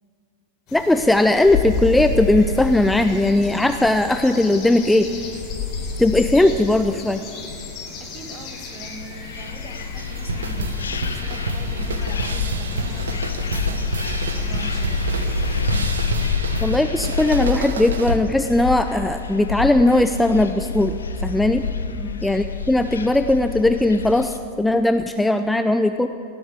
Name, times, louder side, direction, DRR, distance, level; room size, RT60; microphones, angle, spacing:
sound 1, 0.7-15.5, left 4 dB, 35° left, 3.9 m, -32 dB
voice 1, 0.7-5.1 6.0-7.2 16.6-20.9 21.2-21.6 22.2-26.1, left 2 dB, 5° left, 8 dB, 0.4 m, -18 dB
voice 2, 8.0-13.8 14.3-15.0 21.9-22.2, right 2 dB, 30° right, 5 dB, 1.6 m, -40 dB
sound 2, 8.7-24.4, left 5 dB, 70° left, 0.7 m, -27 dB
sound 3, 10.0-18.3, right 4 dB, 65° right, 0.9 m, -30 dB
17.5 x 7.8 x 8.3 m, 2.6 s
figure-of-eight pair, 90°, 0 cm